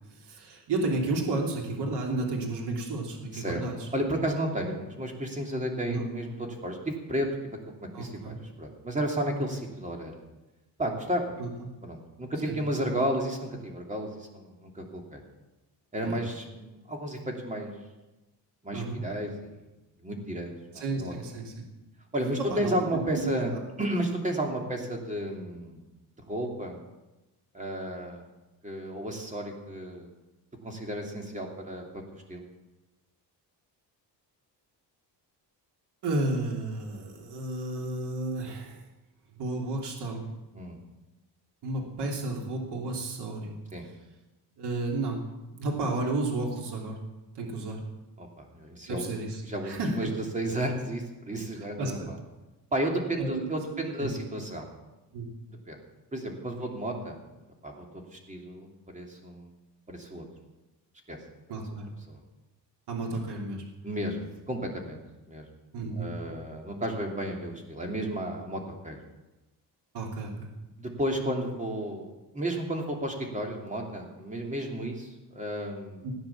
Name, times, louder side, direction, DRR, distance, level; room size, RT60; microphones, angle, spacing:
voice 1, 0.1-3.9 5.9-6.0 7.9-8.4 11.4-11.5 12.5-12.6 16.0-16.2 18.7-19.0 20.7-21.6 22.4-23.6 36.0-38.8 39.3-40.2 41.6-43.5 44.6-45.2 45.6-47.0 47.3-47.8 48.9-49.9 51.8-52.1 53.2-53.4 53.7-54.1 55.1-55.3 61.5-61.9 62.9-63.6 65.7-66.1 69.9-70.5 76.0-76.1, right 2 dB, 75° right, 0 dB, 3.1 m, -32 dB
voice 2, 3.3-3.6 3.9-10.2 10.8-11.4 11.8-15.2 15.9-17.7 18.6-19.5 20.0-21.2 22.1-23.5 23.8-25.8 26.3-26.8 27.5-28.3 28.6-30.1 30.6-31.8 32.1-32.4 40.5-40.8 43.7-43.9 48.2-49.1 49.4-52.2 52.7-54.7 55.5-55.8 56.1-57.2 57.6-59.5 59.9-60.2 61.1-61.2 62.1-62.2 63.8-65.5 66.0-69.0 70.8-76.0, right 1 dB, 20° right, 1 dB, 2.9 m, -33 dB
17.5 x 9.7 x 7.1 m, 1.1 s
cardioid pair, 150°, 41 cm